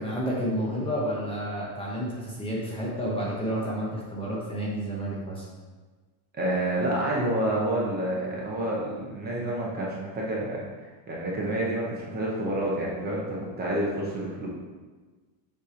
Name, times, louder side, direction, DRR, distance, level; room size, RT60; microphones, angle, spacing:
voice 1, 0.0-5.4, equal, 10° left, -6 dB, 0.8 m, -30 dB
voice 2, 6.3-14.5, right 1 dB, 20° right, -4 dB, 0.8 m, -29 dB
7.0 x 3.3 x 5.0 m, 1.4 s
cardioid pair, 175°, 49 cm